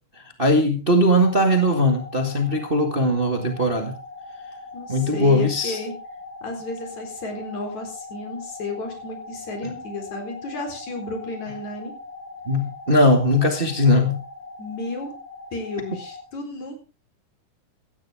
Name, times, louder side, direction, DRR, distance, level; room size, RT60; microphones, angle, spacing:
voice 1, 0.4-3.9 4.9-5.8 12.5-14.2, left 1 dB, 20° right, 5 dB, 1.7 m, -19 dB
sound 1, 1.2-16.2, left 3 dB, 35° left, 5.2 m, -40 dB
voice 2, 4.7-5.9 6.4-12.0 14.6-15.1 15.5-16.8, left 2 dB, 60° left, 5 dB, 5.4 m, -33 dB
17.5 x 13.5 x 3.6 m, 0.33 s
omnidirectional pair, 3.6 m